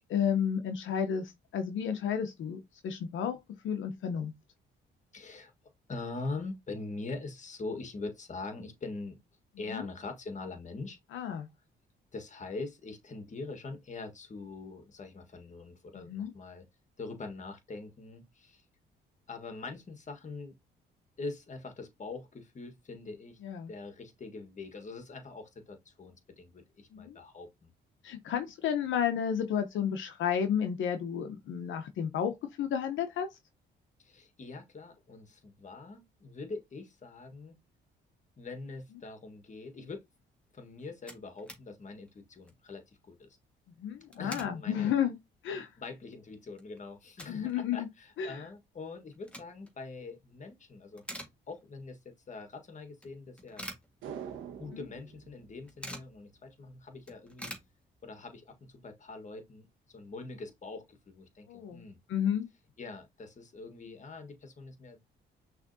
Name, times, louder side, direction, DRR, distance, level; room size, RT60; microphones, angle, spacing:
voice 1, 0.1-3.4 3.6-4.3 9.7-9.8 11.1-11.5 16.0-16.3 23.4-23.7 26.9-27.2 28.0-33.3 43.8-45.1 45.4-45.7 47.3-47.9 48.2-48.4 54.7-54.8 61.5-62.5, left 8 dB, 75° left, 0.8 m, -32 dB
voice 2, 5.1-5.5 5.9-9.2 9.6-11.0 12.1-16.7 17.0-18.6 19.3-20.5 21.2-23.4 23.7-27.7 34.0-37.6 38.4-40.0 40.5-43.4 44.2-44.9 45.5-51.0 51.5-53.7 54.6-57.6 58.0-62.0 62.8-65.0, left 3 dB, 35° left, 1.5 m, -43 dB
sound 1, 40.5-40.6 40.7-41.7 42.0-42.1 42.4-42.7 43.9-44.6 45.1-45.2 45.7-45.8 46.1-47.5 47.8-47.9 48.9-49.8 50.2-50.5 50.8-51.9 52.2-52.3 53.0-54.5 54.8-54.9 55.1-56.2 56.6-56.7 56.9-58.3, equal, 5° left, 1.6 m, -46 dB
sound 2, 54.0-56.5 56.8-56.9, right 8 dB, 85° right, 1.1 m, -45 dB
5.9 x 3.3 x 2.7 m
cardioid pair, 90°, 20 cm